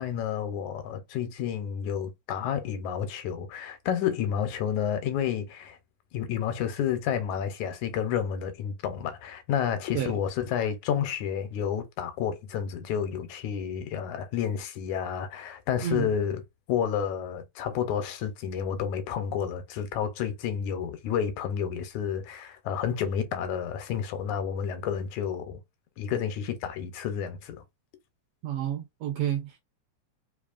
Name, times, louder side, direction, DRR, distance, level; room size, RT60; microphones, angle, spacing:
voice 1, 0.0-5.8 6.1-16.4 16.7-25.6 26.0-27.6, left 8 dB, 80° left, 2.1 m, -30 dB
voice 2, 28.4-29.6, right 11 dB, 80° right, 1.6 m, -30 dB
4.8 x 2.7 x 2.4 m
omnidirectional pair, 3.4 m